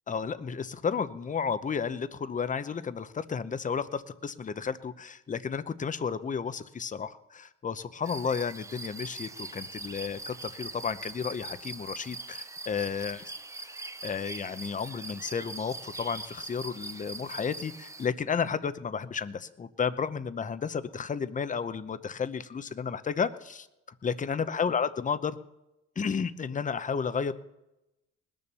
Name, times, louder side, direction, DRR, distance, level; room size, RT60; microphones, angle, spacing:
voice 1, 0.1-13.2 13.6-23.7 24.0-25.4 26.0-27.3, left 6 dB, 25° left, 13 dB, 0.8 m, -32 dB
sound 1, 8.0-18.1, right 3 dB, 10° right, 0.5 m, -42 dB
20.0 x 7.0 x 6.8 m, 0.92 s
cardioid pair, 110°, 30 cm